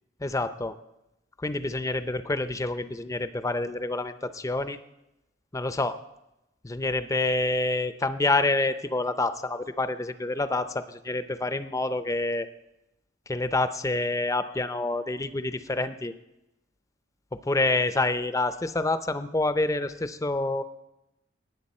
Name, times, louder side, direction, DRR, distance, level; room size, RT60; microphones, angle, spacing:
voice 1, 0.2-0.7 1.4-4.8 5.5-6.0 6.6-12.5 13.3-16.1 17.3-20.6, left 2 dB, 15° left, 11 dB, 0.5 m, -27 dB
19.0 x 8.4 x 4.3 m, 0.90 s
head